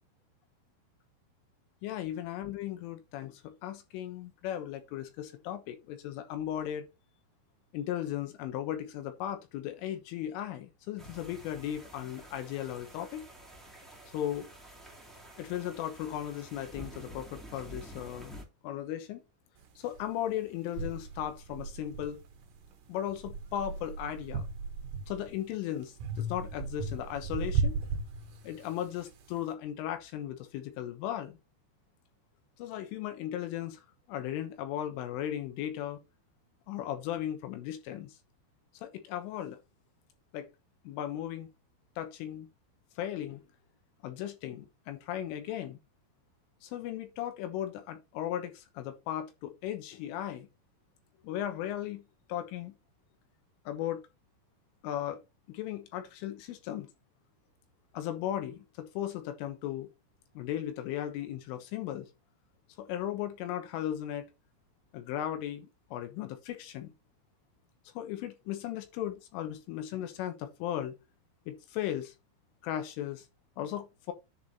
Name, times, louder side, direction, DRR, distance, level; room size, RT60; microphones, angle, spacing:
voice 1, 1.8-6.9 7.7-13.3 14.1-14.5 15.4-18.3 18.6-19.2 19.8-22.2 22.9-24.5 25.1-27.8 28.4-31.4 32.6-33.8 34.1-36.0 36.7-38.1 38.8-39.6 40.3-40.5 40.9-41.5 42.0-42.5 43.0-43.4 44.0-45.8 46.6-50.5 51.2-52.0 52.3-52.7 53.7-54.0 54.8-55.2 55.5-56.9 57.9-59.9 60.4-62.1 62.8-64.3 64.9-66.9 68.0-70.9 71.5-72.1 72.6-73.3 73.6-74.1, left 11 dB, 80° left, 3.6 m, -36 dB
sound 1, 11.0-18.4, right 1 dB, ahead, 1.2 m, -49 dB
sound 2, 20.0-20.1 20.8-22.6 23.1-25.4 26.0-28.8, right 4 dB, 60° right, 2.3 m, -35 dB
10.0 x 4.7 x 4.2 m
omnidirectional pair, 5.8 m